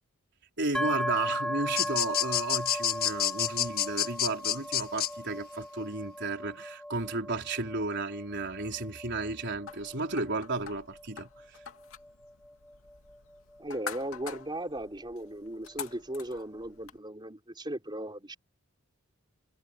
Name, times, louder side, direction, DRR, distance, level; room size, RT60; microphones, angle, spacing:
voice 1, 0.6-11.6, right 3 dB, 55° right, 4.5 m, -33 dB
sound 1, 0.7-14.4, equal, 5° left, 1.5 m, -38 dB
sound 2, 1.8-5.1, left 10 dB, 45° left, 1.6 m, -28 dB
sound 3, 9.7-17.0, left 6 dB, 75° left, 2.8 m, -46 dB
voice 2, 13.6-18.4, right 1 dB, 20° right, 4.7 m, -37 dB
head